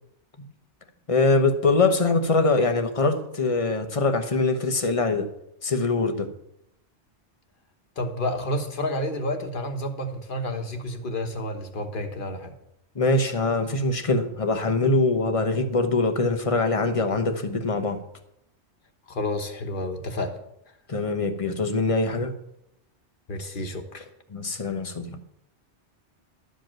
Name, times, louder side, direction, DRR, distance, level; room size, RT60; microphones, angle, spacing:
voice 1, 1.1-5.3 5.6-6.3 12.9-18.0 20.9-22.3 24.3-25.2, left 3 dB, 30° left, 0.9 m, -23 dB
voice 2, 8.0-12.5 19.1-20.4 23.3-24.0, left 1 dB, 50° left, 1.4 m, -30 dB
12.5 x 5.2 x 7.5 m
omnidirectional pair, 1.2 m